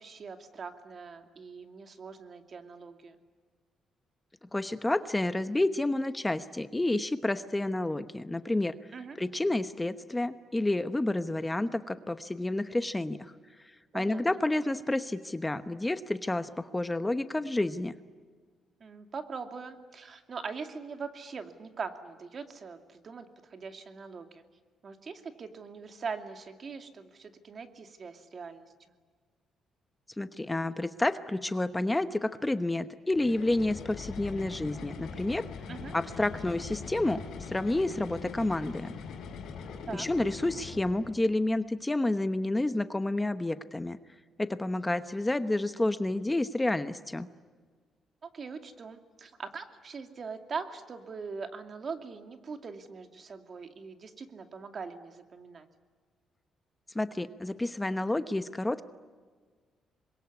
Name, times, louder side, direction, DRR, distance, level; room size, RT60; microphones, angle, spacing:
voice 1, 0.0-3.2 8.9-9.2 13.9-14.2 18.8-24.4 24.8-28.7 35.7-35.9 39.9-40.1 48.2-55.7, right 5 dB, 45° right, 6 dB, 2.5 m, -42 dB
voice 2, 4.5-8.7 9.2-13.3 13.9-17.9 30.2-35.5 35.9-37.2 37.5-38.9 39.9-44.0 44.4-47.3 56.9-58.8, left 2 dB, 15° left, 11 dB, 1.0 m, -30 dB
sound 1, 33.1-41.2, left 5 dB, 75° left, 4.5 m, -42 dB
26.5 x 22.5 x 9.7 m, 1.5 s
cardioid pair, 90°, 0 cm